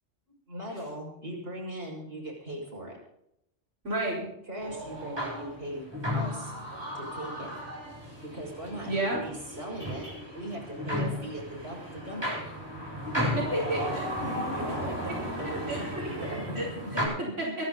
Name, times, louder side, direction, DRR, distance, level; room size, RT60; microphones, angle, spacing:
voice 1, 0.5-3.0 4.5-5.9 6.1-6.5 6.9-7.5 8.3-10.1 10.3-12.4 14.2-17.1, right 1 dB, 50° right, -2 dB, 6.8 m, -39 dB
voice 2, 3.8-4.3 8.9-9.2 13.2-14.1 15.7-15.8 16.6-16.7 17.4-17.5, right 1 dB, 75° right, -5 dB, 5.2 m, -30 dB
sound 1, 4.6-17.1, equal, 20° right, 8.1 m, -34 dB
24.5 x 11.0 x 4.2 m, 0.78 s
omnidirectional pair, 1.3 m